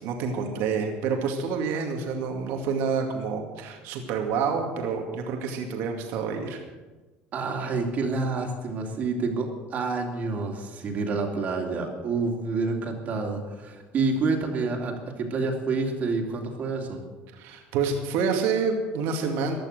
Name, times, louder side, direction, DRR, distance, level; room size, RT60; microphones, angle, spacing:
voice 1, 0.0-6.6 17.3-19.5, right 5 dB, 75° right, 2 dB, 2.2 m, -28 dB
voice 2, 7.3-17.0, right 3 dB, 40° right, 1 dB, 2.6 m, -28 dB
15.5 x 11.5 x 6.6 m, 1.2 s
cardioid pair, 135°, 4 cm